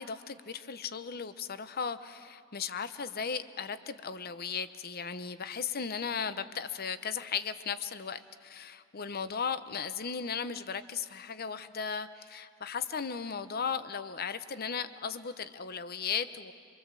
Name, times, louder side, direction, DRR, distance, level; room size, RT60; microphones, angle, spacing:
voice 1, 0.0-16.5, left 6 dB, 50° left, 12 dB, 0.8 m, -36 dB
26.0 x 23.5 x 7.5 m, 2.2 s
head